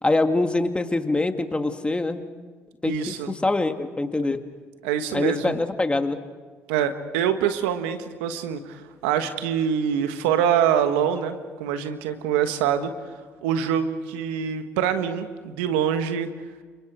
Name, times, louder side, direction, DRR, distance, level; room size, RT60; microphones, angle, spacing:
voice 1, 0.0-2.2 2.8-3.1 3.4-4.4 5.1-6.2, left 2 dB, 20° left, 6 dB, 2.2 m, -24 dB
voice 2, 2.8-3.3 4.8-5.6 6.7-12.9 13.4-16.3, right 8 dB, 85° right, 8 dB, 1.4 m, -25 dB
30.0 x 27.0 x 4.7 m, 1.5 s
hypercardioid pair, 55°, 6 cm